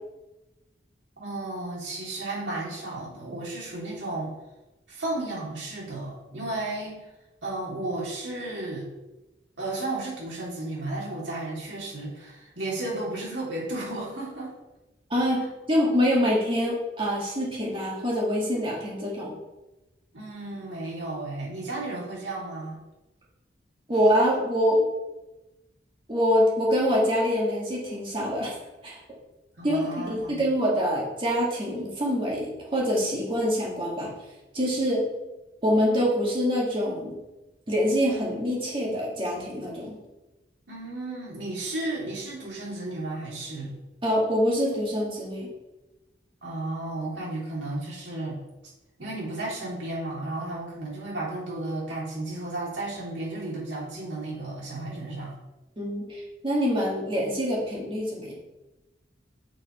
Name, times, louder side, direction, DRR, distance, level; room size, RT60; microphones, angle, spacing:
voice 1, 1.2-4.3 4.9-7.0 7.4-8.9 9.6-14.5 20.1-22.8 29.6-30.4 40.7-43.7 46.4-48.4 49.0-55.3, right 2 dB, 90° right, -5 dB, 2.9 m, -33 dB
voice 2, 15.1-19.3 23.9-24.8 26.1-28.5 28.8-29.0 29.6-34.1 34.5-35.0 35.6-37.2 37.7-39.9 44.0-45.5 55.8-58.3, equal, 30° right, -4 dB, 2.2 m, -25 dB
7.4 x 5.2 x 4.6 m, 1.0 s
head